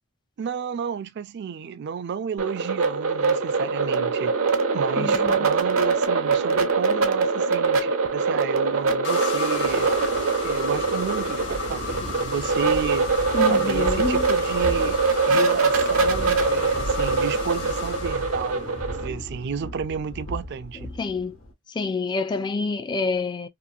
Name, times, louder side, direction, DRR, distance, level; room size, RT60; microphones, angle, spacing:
voice 1, 0.4-4.3 4.7-9.9 10.4-13.1 13.5-15.0 15.3-20.9, right 6 dB, 55° right, 0.4 m, -32 dB
sound 1, 2.4-19.1, right 4 dB, 85° right, 0.7 m, -23 dB
voice 2, 5.0-5.5 13.3-14.3 21.0-21.4 21.7-23.5, left 4 dB, 20° left, 0.3 m, -27 dB
sound 2, 9.0-19.0, left 5 dB, 60° left, 1.0 m, -34 dB
sound 3, 9.3-21.5, equal, 75° left, 1.2 m, -36 dB
2.9 x 2.4 x 2.3 m
head